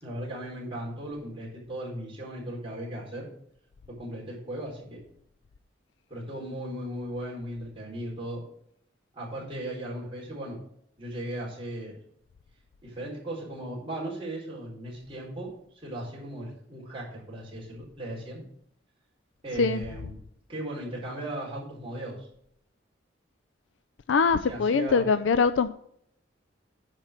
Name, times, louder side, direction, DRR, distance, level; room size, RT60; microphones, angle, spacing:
voice 1, 0.0-3.3 4.0-5.0 6.1-8.4 9.1-10.6 11.0-11.9 12.8-15.5 15.8-18.4 19.4-20.2 20.5-22.3 24.5-25.0, right 1 dB, 30° right, -4 dB, 4.4 m, -37 dB
voice 2, 24.1-25.7, left 5 dB, 80° left, 12 dB, 0.4 m, -23 dB
10.5 x 4.5 x 7.4 m, 0.71 s
head